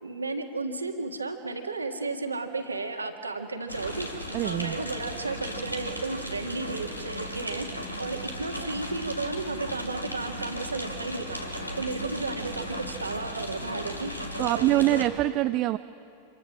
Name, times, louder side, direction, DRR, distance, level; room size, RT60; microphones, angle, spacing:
voice 1, 0.0-4.1 4.4-7.7 8.0-11.4 11.8-14.1 14.4-15.1, right 3 dB, 80° right, 5 dB, 1.8 m, -33 dB
sound 1, 3.7-15.1, equal, 90° left, 2.3 m, -36 dB
voice 2, 4.3-4.8 14.4-15.8, right 16 dB, 40° right, 11 dB, 0.5 m, -24 dB
26.0 x 23.0 x 6.3 m, 2.7 s
figure-of-eight pair, 90°, 0 cm